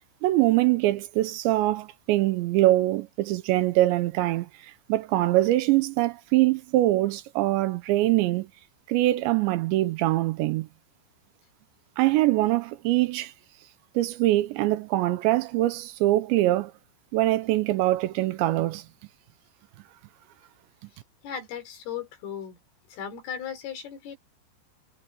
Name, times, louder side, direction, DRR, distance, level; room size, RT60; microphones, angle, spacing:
voice 1, 0.2-8.5 8.9-10.7 12.0-13.3 14.0-16.7 17.1-18.9, right 16 dB, 80° right, 2.8 m, -23 dB
voice 2, 21.2-22.6 22.9-24.2, left 8 dB, 90° left, 7.0 m, -36 dB
omnidirectional pair, 5.6 m